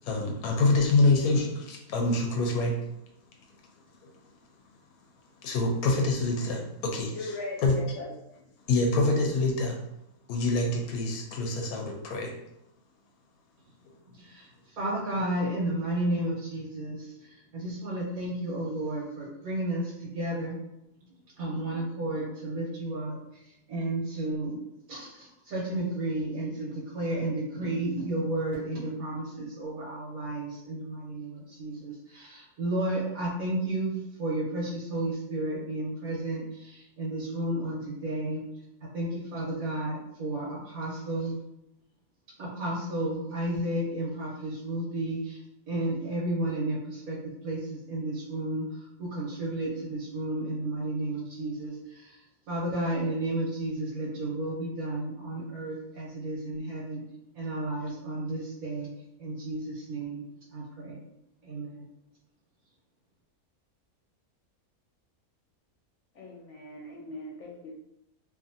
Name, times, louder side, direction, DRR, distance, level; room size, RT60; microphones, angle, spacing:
voice 1, 0.0-2.8 5.4-7.8 8.7-9.8 10.3-12.3, left 2 dB, 80° left, 1 dB, 1.1 m, -26 dB
voice 2, 7.1-8.1 66.2-67.7, left 2 dB, 65° left, -1 dB, 0.8 m, -39 dB
voice 3, 14.1-20.6 21.4-24.6 24.9-38.4 38.8-41.4 42.4-45.4 45.7-52.2 52.5-57.0 57.3-58.9 59.2-60.2 60.5-61.0 61.4-61.8, right 1 dB, 85° right, -6 dB, 1.3 m, -32 dB
2.7 x 2.5 x 2.6 m, 0.83 s
omnidirectional pair, 1.6 m